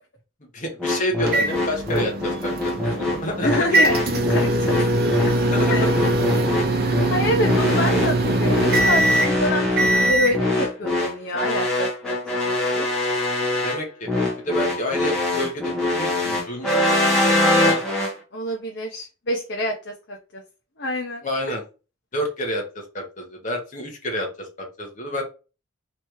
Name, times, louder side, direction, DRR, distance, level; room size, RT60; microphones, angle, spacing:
voice 1, 0.5-3.8 5.5-5.9 13.6-14.1 14.4-17.8 21.2-21.6 22.1-22.6 22.9-25.2, equal, 40° left, 2 dB, 1.0 m, -29 dB
sound 1, 0.8-18.1, left 2 dB, 5° left, 1.3 m, -23 dB
sound 2, 1.3-10.4, right 1 dB, 50° right, 0.7 m, -22 dB
voice 2, 3.4-5.4 5.7-5.9 6.5-12.9 18.3-20.4 20.8-21.6, equal, 55° left, 1 dB, 0.7 m, -27 dB
3.3 x 3.1 x 4.6 m, 0.32 s
head